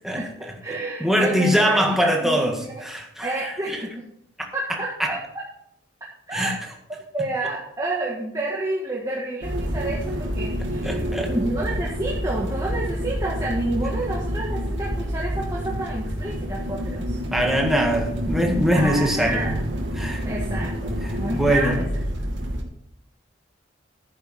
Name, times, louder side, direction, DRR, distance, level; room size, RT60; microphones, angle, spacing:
voice 1, 0.0-3.8 4.7-5.2 6.3-6.6 10.8-11.3 17.3-19.5 20.0-20.2 21.0-21.9, equal, ahead, 1 dB, 1.8 m, -23 dB
voice 2, 0.6-2.8 3.2-4.1 4.5-5.2 6.3-6.5 7.1-11.0 11.3-17.2 18.7-19.6 20.2-21.8, right 2 dB, 15° right, -4 dB, 1.7 m, -29 dB
sound 1, 9.4-22.6, equal, 75° right, 2.5 m, -28 dB
11.5 x 9.7 x 4.3 m, 0.75 s
head